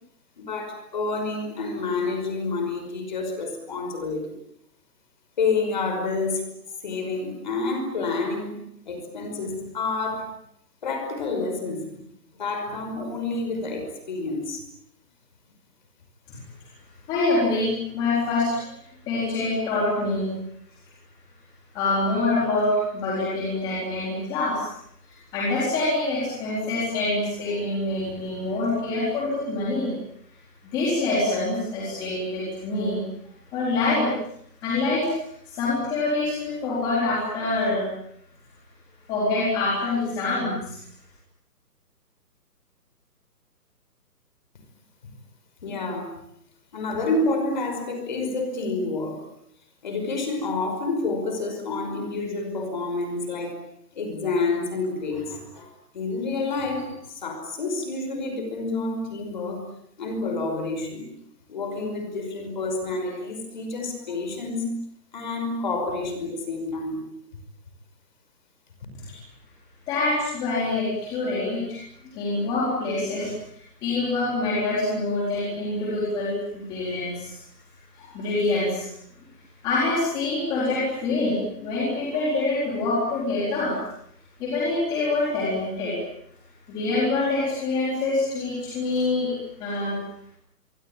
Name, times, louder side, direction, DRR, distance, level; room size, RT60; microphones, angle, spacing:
voice 1, 0.4-4.2 5.4-6.4 6.8-8.5 8.9-10.3 10.8-11.9 12.4-14.6 45.6-46.1 46.7-49.2 49.8-53.6 53.9-55.7 55.9-59.6 60.0-61.1 61.5-64.7 65.1-67.0, left 3 dB, 30° left, 6 dB, 5.4 m, -28 dB
voice 2, 17.1-18.6 19.1-20.3 21.7-24.6 25.3-29.9 30.7-33.0 33.5-34.1 34.6-35.1 35.5-37.9 39.1-40.8 69.9-71.8 72.0-77.4 77.9-78.9 79.6-83.7 84.4-85.9 86.7-89.3 89.6-90.0, left 2 dB, 10° left, -6 dB, 4.0 m, -25 dB
25.5 x 24.0 x 9.1 m, 0.73 s
hypercardioid pair, 180°, 49 cm